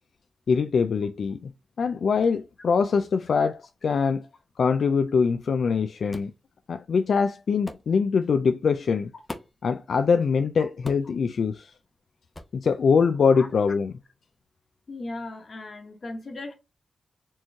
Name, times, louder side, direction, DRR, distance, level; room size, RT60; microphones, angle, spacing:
voice 1, 0.5-1.5 1.8-4.3 4.6-6.3 6.7-9.1 9.6-11.7 12.5-13.9, left 5 dB, 75° left, 0.3 m, -23 dB
sound 1, 6.1-6.4 7.7-7.9 9.3-9.6 10.8-11.2 12.3-12.6, left 1 dB, 20° left, 0.7 m, -39 dB
voice 2, 14.9-16.5, left 2 dB, 45° left, 1.2 m, -37 dB
4.4 x 3.1 x 3.4 m
wide cardioid pair, 145°, 0 cm